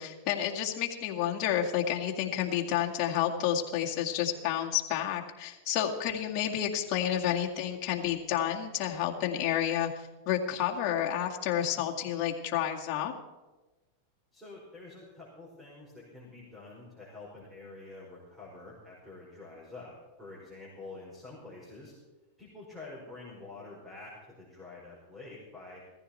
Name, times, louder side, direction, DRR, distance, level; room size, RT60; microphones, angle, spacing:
voice 1, 0.0-13.1, left 10 dB, 45° left, 1 dB, 2.1 m, -30 dB
voice 2, 14.3-19.9 20.2-21.9 22.4-25.8, left 3 dB, 5° right, -6 dB, 5.1 m, -47 dB
16.5 x 14.5 x 4.4 m, 1.1 s
hypercardioid pair, 115°, 0 cm